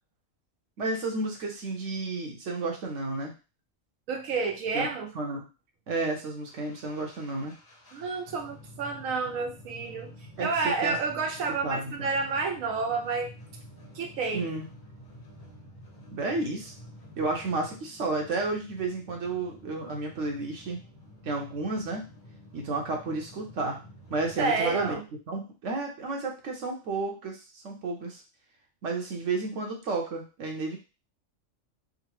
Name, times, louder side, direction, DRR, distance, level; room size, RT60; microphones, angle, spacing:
voice 1, 0.8-3.3 4.7-4.9 5.1-5.5 5.9-7.5 10.4-10.5 10.8-10.9 11.6-12.1 14.3-14.7 16.1-16.7 17.2-20.8 21.2-22.1 22.5-23.8 24.1-25.0 25.3-27.4 27.6-28.2 28.8-30.8, right 3 dB, 70° right, 1 dB, 1.1 m, -32 dB
voice 2, 4.1-5.1 7.9-13.3 13.9-14.5 24.4-25.0, right 4 dB, 90° right, 2 dB, 1.1 m, -30 dB
sound 1, 6.5-24.9, equal, 20° left, 0.9 m, -50 dB
3.7 x 2.0 x 3.0 m, 0.30 s
omnidirectional pair, 1.4 m